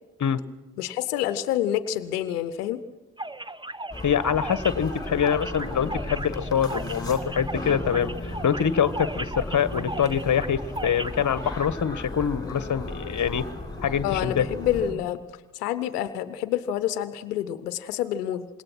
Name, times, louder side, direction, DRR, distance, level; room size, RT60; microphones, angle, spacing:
voice 1, 0.8-2.8 14.0-15.2 15.5-18.5, left 11 dB, 85° left, 13 dB, 0.9 m, -28 dB
sound 1, 3.2-11.7, right 1 dB, 10° right, 1.2 m, -37 dB
sound 2, 3.9-14.9, left 1 dB, 10° left, 7.3 m, -35 dB
voice 2, 4.0-13.5 13.8-14.5, left 8 dB, 40° left, 14 dB, 1.4 m, -25 dB
25.5 x 21.0 x 6.1 m, 1.2 s
hypercardioid pair, 45°, 45 cm